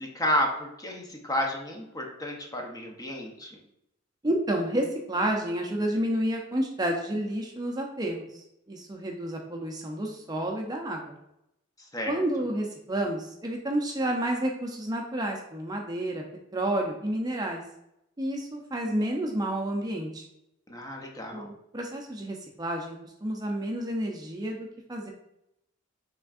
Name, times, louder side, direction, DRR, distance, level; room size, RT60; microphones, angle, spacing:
voice 1, 0.0-3.6 11.8-12.2 20.7-21.5, left 1 dB, 20° left, 1 dB, 0.7 m, -31 dB
voice 2, 4.2-11.2 12.1-16.2 16.5-17.6 18.2-20.2 21.3-25.1, right 1 dB, 20° right, 1 dB, 0.6 m, -30 dB
6.0 x 3.5 x 2.4 m, 0.81 s
head